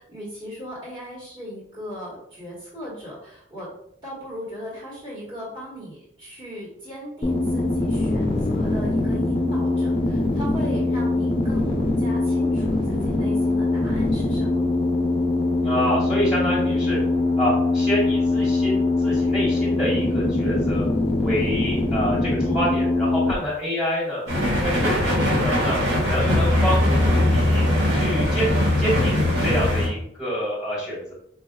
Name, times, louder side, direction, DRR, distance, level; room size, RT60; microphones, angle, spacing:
voice 1, 0.0-3.7 4.0-14.6 21.3-21.5, equal, 25° right, -8 dB, 1.4 m, -37 dB
sound 1, 7.2-23.3, left 2 dB, 25° left, 0.4 m, -22 dB
voice 2, 15.6-17.0 17.4-20.9 21.2-24.2 24.6-25.8 26.0-27.7 27.9-31.1, equal, 5° right, -6 dB, 1.5 m, -27 dB
sound 2, 24.3-29.9, left 1 dB, 75° right, 1.5 m, -20 dB
4.6 x 2.6 x 2.3 m, 0.72 s
head